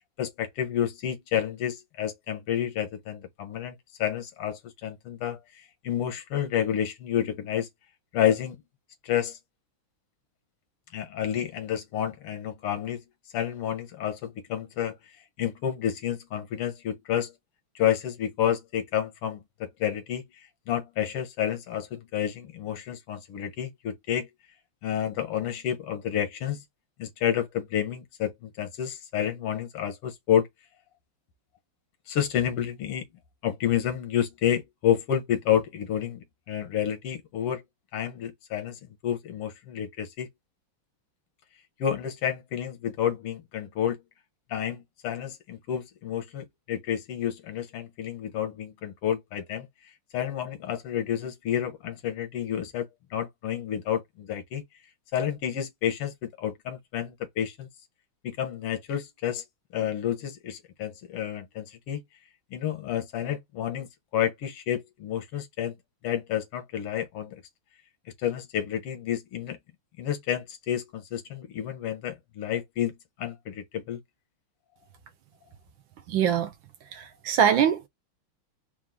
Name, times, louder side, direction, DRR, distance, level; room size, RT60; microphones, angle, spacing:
voice 1, 0.2-7.7 8.1-8.6 9.0-9.4 10.9-13.0 13.3-15.0 15.4-17.3 17.8-20.2 20.7-24.3 24.8-26.6 27.0-30.5 32.1-33.0 33.4-37.6 37.9-40.3 41.8-44.0 44.5-49.7 50.1-54.6 55.1-57.7 58.2-59.4 59.7-62.0 62.5-65.8 66.0-67.4 68.2-69.6 70.0-74.0, left 10 dB, 90° left, 2.0 m, -30 dB
voice 2, 76.1-76.5 76.9-77.9, right 8 dB, 70° right, 1.3 m, -23 dB
4.7 x 2.4 x 3.6 m
omnidirectional pair, 2.4 m